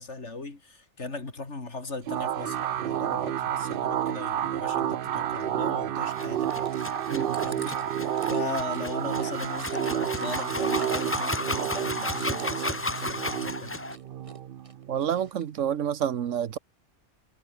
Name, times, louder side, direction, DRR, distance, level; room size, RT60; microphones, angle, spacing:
voice 1, 0.0-6.7 7.4-7.8 8.0-13.8, left 3 dB, 60° left, 3.4 m, -38 dB
sound 1, 2.1-15.3, right 10 dB, 55° right, 0.7 m, -30 dB
sound 2, 6.1-14.0, left 2 dB, 15° left, 0.5 m, -34 dB
Chewing mastication, 6.3-13.3 13.6-14.4 14.6-15.6 16.1-16.2, right 2 dB, 25° right, 2.8 m, -47 dB
voice 2, 14.9-16.6, right 9 dB, 75° right, 1.2 m, -28 dB
omnidirectional pair, 1.3 m